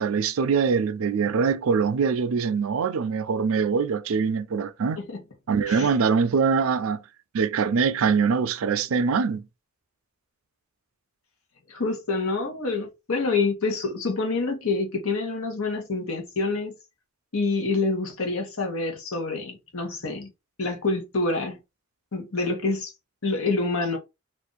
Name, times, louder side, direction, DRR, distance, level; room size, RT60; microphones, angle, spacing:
voice 1, 0.0-5.0 5.5-7.0 7.3-9.4, right 5 dB, 70° right, 0.4 m, -23 dB
voice 2, 11.7-16.7 17.3-20.3 20.6-21.6 22.1-22.9 23.2-24.0, left 3 dB, 80° left, 1.0 m, -27 dB
2.6 x 2.4 x 3.8 m
head